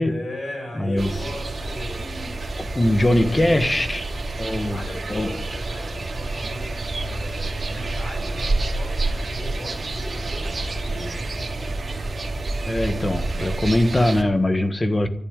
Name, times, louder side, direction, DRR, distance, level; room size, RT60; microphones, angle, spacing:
voice 1, 0.0-2.1 2.8-4.2 4.5-11.7, left 1 dB, 40° left, 6.8 m, -38 dB
voice 2, 0.7-1.1 2.0-4.1 4.4-4.8 5.1-5.3 12.7-15.1, left 1 dB, 20° left, 1.4 m, -22 dB
sound 1, 1.0-14.2, right 2 dB, 30° right, 3.3 m, -28 dB
14.0 x 10.5 x 9.0 m
wide cardioid pair, 160°, 0 cm